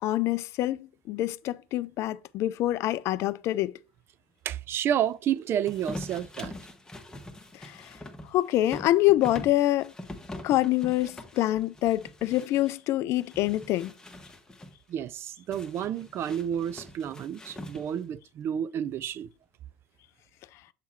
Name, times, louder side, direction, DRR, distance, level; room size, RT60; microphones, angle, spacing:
voice 1, 0.0-3.7 7.5-7.9 8.3-9.9 10.4-13.9, left 15 dB, 50° left, 0.4 m, -26 dB
voice 2, 4.5-6.5 14.9-19.3, right 9 dB, 40° right, 0.4 m, -30 dB
sound 1, 5.6-12.8 13.2-14.7 15.5-18.1, left 1 dB, 10° left, 1.3 m, -43 dB
7.4 x 3.6 x 4.4 m
hypercardioid pair, 75°, 6 cm